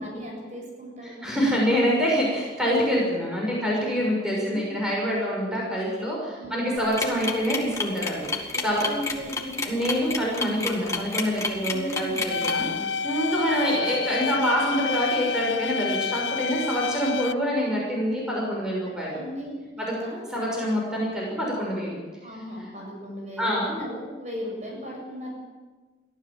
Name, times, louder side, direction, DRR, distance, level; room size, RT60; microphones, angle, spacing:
voice 1, 0.0-1.3 4.4-4.8 6.3-6.7 8.5-9.6 11.6-12.9 19.1-20.2 22.2-25.3, equal, 40° right, -1 dB, 7.5 m, -37 dB
voice 2, 1.2-8.9 9.6-12.7 13.0-19.2 20.3-22.0 23.4-23.7, equal, 5° right, -4 dB, 6.5 m, -26 dB
sound 1, 6.8-12.6, left 3 dB, 15° left, 2.0 m, -29 dB
sound 2, 12.3-17.3, left 6 dB, 90° left, 0.7 m, -29 dB
23.5 x 15.0 x 7.7 m, 1.3 s
head